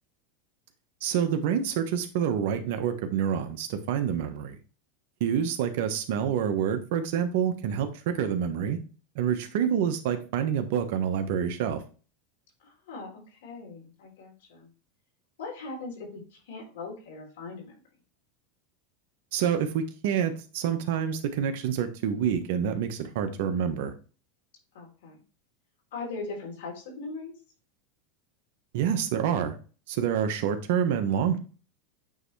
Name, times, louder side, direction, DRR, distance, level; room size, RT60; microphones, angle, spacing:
voice 1, 1.0-4.6 5.2-8.8 9.1-11.8 19.3-23.9 28.7-29.6 29.9-31.4, right 8 dB, 70° right, 8 dB, 1.1 m, -27 dB
voice 2, 12.6-14.7 15.4-17.8 24.7-25.2 25.9-27.3, left 3 dB, 80° left, 0 dB, 3.4 m, -40 dB
8.9 x 3.4 x 3.2 m, 0.36 s
supercardioid pair, 120°, 0 cm